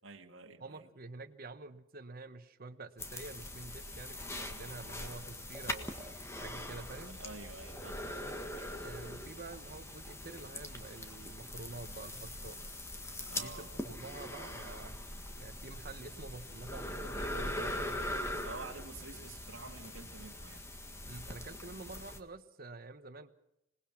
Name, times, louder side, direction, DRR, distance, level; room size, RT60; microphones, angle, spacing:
voice 1, 0.0-0.9 7.1-8.4 13.3-13.7 18.4-20.6, right 3 dB, 65° right, 3 dB, 1.9 m, -49 dB
voice 2, 0.6-5.9 6.4-7.2 8.8-12.6 13.3-15.0 15.4-18.0 21.1-23.3, right 3 dB, 45° right, 9 dB, 1.2 m, -48 dB
sound 1, 3.0-22.2, left 1 dB, 15° left, 1.6 m, -42 dB
sound 2, 4.0-16.6, right 1 dB, 10° right, 3.1 m, -61 dB
26.5 x 19.5 x 6.0 m, 0.86 s
head